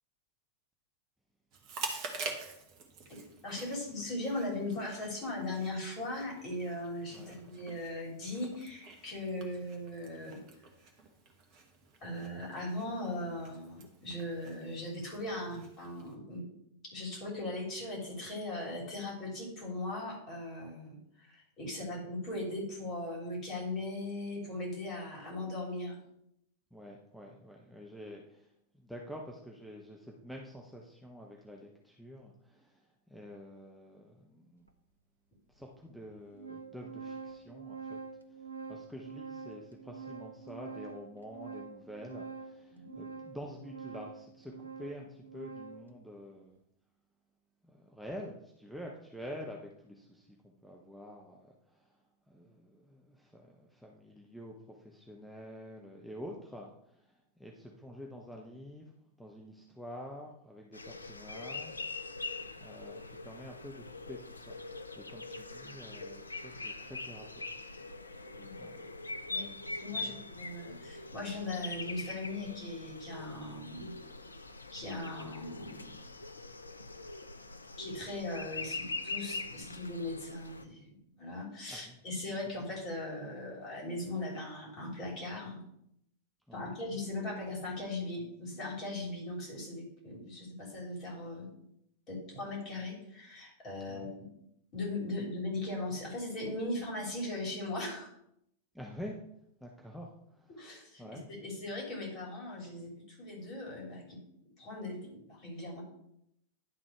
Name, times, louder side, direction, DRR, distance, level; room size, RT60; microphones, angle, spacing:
Chewing mastication, 1.5-16.1, right 4 dB, 40° right, 1.3 m, -47 dB
voice 1, 3.4-10.4 12.0-16.4 16.9-26.0 42.7-43.0 68.3-68.5 69.3-69.5 69.8-73.9 74.7-76.0 77.8-85.6 86.5-91.5 92.1-94.3 94.7-98.1 100.5-104.2 104.6-105.8, left 2 dB, 35° left, -2 dB, 3.4 m, -39 dB
voice 2, 26.7-34.7 35.5-38.0 38.7-46.6 47.6-51.9 52.3-58.9 59.2-61.9 62.6-64.6 65.0-67.3 68.6-68.8 69.9-70.2 81.7-82.0 86.5-86.8 93.9-94.1 98.7-99.2 99.6-100.5 101.0-101.3, equal, ahead, -1 dB, 0.8 m, -48 dB
Organ, 34.7-34.8 35.6-35.7 36.0-45.9, right 5 dB, 80° right, 0.6 m, -46 dB
sound 1, 60.7-80.6, left 3 dB, 80° left, 0.5 m, -43 dB
10.5 x 3.9 x 4.6 m, 0.76 s
figure-of-eight pair, 90°, 0 cm